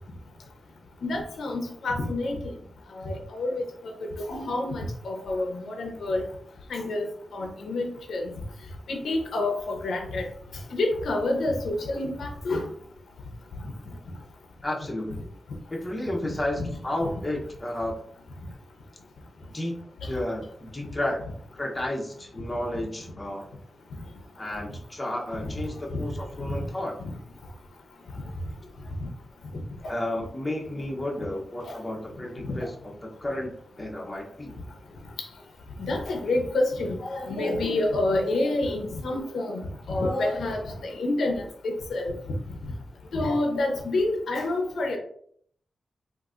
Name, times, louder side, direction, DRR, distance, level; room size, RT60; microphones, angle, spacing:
voice 1, 1.0-2.4 3.0-3.9 4.3-6.2 6.7-7.1 7.3-8.3 8.9-10.3 10.7-12.6 25.9-26.0 31.6-31.7 35.8-39.6 39.9-42.1 43.1-45.0, left 2 dB, 85° left, 2 dB, 0.7 m, -28 dB
voice 2, 14.6-15.3 15.7-18.0 19.5-21.2 21.5-23.4 24.4-27.0 29.9-33.5 33.8-34.5, left 1 dB, 20° left, -1 dB, 0.8 m, -32 dB
3.9 x 2.6 x 2.4 m, 0.62 s
wide cardioid pair, 105°, 0 cm